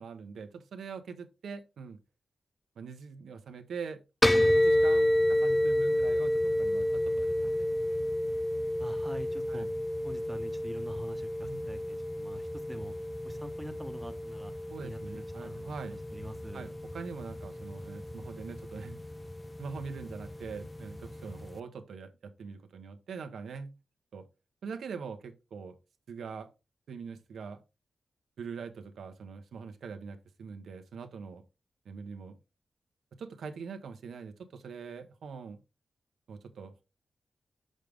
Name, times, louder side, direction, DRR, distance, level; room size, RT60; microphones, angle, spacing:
voice 1, 0.0-2.0 2.8-4.0 4.4-7.7 9.5-9.7 11.4-11.7 14.7-16.0 16.5-19.0 19.6-23.7 24.1-24.3 24.6-25.7 26.1-26.5 26.9-27.6 28.4-31.4 31.8-32.4 33.1-35.6 36.3-36.8, right 5 dB, 90° right, 0.9 m, -43 dB
sound 1, 4.2-21.6, left 1 dB, 15° left, 0.3 m, -30 dB
voice 2, 8.8-9.7 10.0-12.9 13.2-14.5 14.8-15.7 16.1-16.7, right 1 dB, 10° right, 1.0 m, -45 dB
6.4 x 5.1 x 3.5 m
wide cardioid pair, 95°, 0 cm